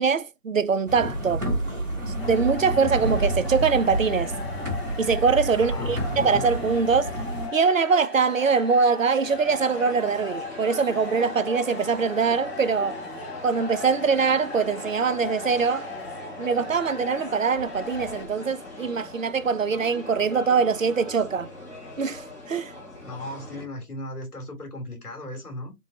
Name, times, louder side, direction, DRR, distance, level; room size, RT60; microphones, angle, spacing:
voice 1, 0.0-1.4 2.3-4.3 5.0-7.1 7.5-13.0 13.4-15.9 16.4-21.5 22.0-22.7, right 5 dB, 60° right, 0.5 m, -23 dB
sound 1, 0.9-7.5, right 1 dB, 5° right, 1.5 m, -29 dB
sound 2, 2.2-18.2, left 2 dB, 40° left, 1.4 m, -38 dB
voice 2, 5.5-6.2 23.0-25.7, left 1 dB, 75° left, 3.0 m, -37 dB
sound 3, 9.2-23.7, left 2 dB, 10° left, 1.2 m, -40 dB
3.8 x 3.6 x 3.0 m
figure-of-eight pair, 150°, 46 cm